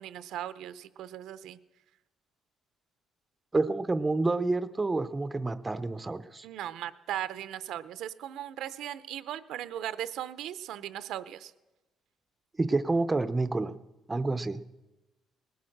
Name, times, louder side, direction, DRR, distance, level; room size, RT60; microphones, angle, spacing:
voice 1, 0.0-1.6 6.4-11.5, right 11 dB, 75° right, 13 dB, 0.6 m, -38 dB
voice 2, 3.5-6.5 12.6-13.8 14.1-14.6, right 3 dB, 15° right, 11 dB, 0.5 m, -28 dB
19.5 x 8.6 x 6.5 m, 1.0 s
cardioid pair, 140°, 0 cm